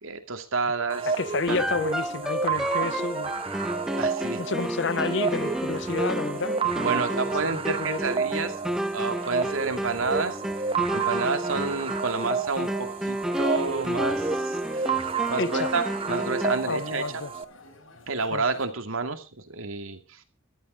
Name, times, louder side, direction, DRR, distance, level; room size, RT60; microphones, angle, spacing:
voice 1, 0.0-1.1 1.5-1.6 3.5-3.6 3.9-4.4 6.8-8.6 8.9-17.2 18.1-20.2, right 4 dB, 90° right, 2.6 m, -30 dB
sound 1, 0.9-17.4, right 5 dB, 25° right, 1.1 m, -31 dB
voice 2, 1.1-3.3 4.4-8.0 15.4-15.7 16.7-17.3 18.3-18.4, left 4 dB, 60° left, 0.7 m, -30 dB
sound 2, 1.5-16.8, equal, ahead, 0.7 m, -31 dB
sound 3, 11.4-18.7, left 2 dB, 85° left, 4.1 m, -52 dB
14.0 x 12.5 x 5.2 m
head